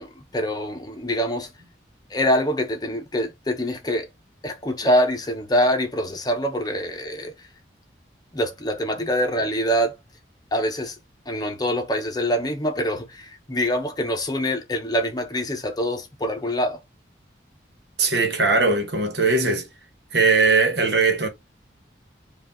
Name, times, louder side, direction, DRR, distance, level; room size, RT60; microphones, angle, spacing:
voice 1, 0.0-1.5 2.1-4.1 4.4-7.3 8.3-10.0 10.5-11.0 11.3-16.8, equal, 20° left, 0.8 m, -24 dB
voice 2, 18.0-19.7 20.1-21.3, right 3 dB, 65° right, 1.3 m, -20 dB
5.1 x 2.5 x 3.5 m
head